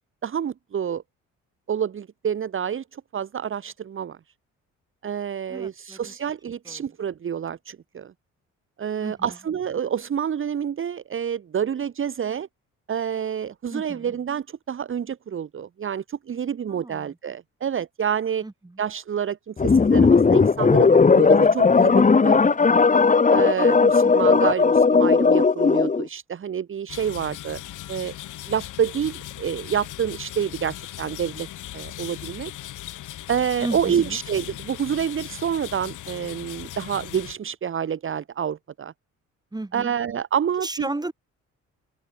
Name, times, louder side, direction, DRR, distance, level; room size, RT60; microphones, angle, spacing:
voice 1, 0.2-1.0 1.7-2.8 3.1-4.2 5.0-8.1 8.8-12.5 12.9-18.4 18.8-22.6 23.3-27.6 27.9-28.1 28.5-31.5 31.7-32.5 33.3-38.9 39.7-40.9, right 8 dB, 45° right, 1.3 m, -28 dB
voice 2, 5.5-6.1 6.7-6.8 9.0-9.4 13.7-14.2 16.7-17.2 18.4-18.8 24.0-24.4 33.6-34.2 39.5-39.9 40.6-41.1, right 2 dB, 15° right, 3.7 m, -34 dB
sound 1, 19.6-26.0, left 4 dB, 25° left, 1.4 m, -17 dB
sound 2, 26.9-37.4, left 14 dB, 85° left, 5.7 m, -38 dB
open air
cardioid pair, 90°, 30 cm